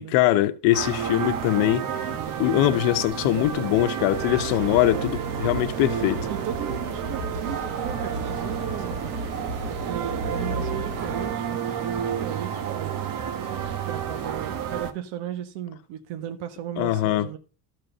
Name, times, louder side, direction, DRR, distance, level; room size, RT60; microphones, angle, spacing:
voice 1, 0.0-1.8 2.4-6.2 16.8-17.3, left 14 dB, 85° left, 1.2 m, -22 dB
sound 1, 0.7-14.9, right 8 dB, 45° right, 1.4 m, -30 dB
sound 2, 4.1-11.3, right 1 dB, 30° right, 3.1 m, -34 dB
voice 2, 6.3-9.4 9.7-13.0 13.9-17.4, right 11 dB, 70° right, 1.4 m, -36 dB
13.5 x 4.7 x 6.7 m
cardioid pair, 170°, 46 cm